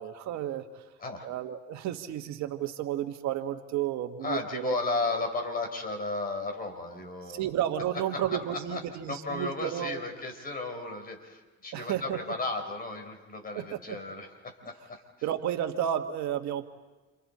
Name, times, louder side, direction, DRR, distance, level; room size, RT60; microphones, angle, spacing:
voice 1, 0.0-0.8 1.2-4.7 7.3-10.0 11.7-12.2 13.5-14.0 15.2-16.6, right 11 dB, 70° right, 6 dB, 1.6 m, -32 dB
voice 2, 1.0-1.3 4.2-7.4 8.1-8.3 8.7-8.8 9.1-15.0, left 3 dB, 30° left, 4 dB, 4.4 m, -34 dB
29.5 x 28.5 x 4.3 m, 1.2 s
cardioid pair, 115°, 29 cm